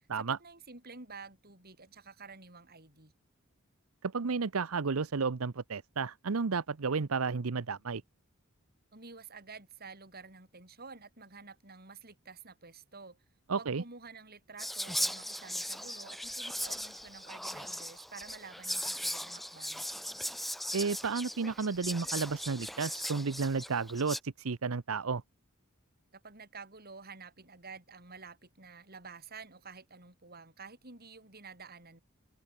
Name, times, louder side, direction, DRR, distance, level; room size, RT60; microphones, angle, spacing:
voice 1, 0.2-3.1 8.9-13.2 13.5-19.9 26.1-32.0, right 4 dB, 45° right, 7.7 m, -50 dB
voice 2, 4.0-8.0 13.5-13.8 20.7-25.2, right 4 dB, 80° right, 0.8 m, -32 dB
Whispering, 14.6-24.2, equal, ahead, 0.4 m, -38 dB
head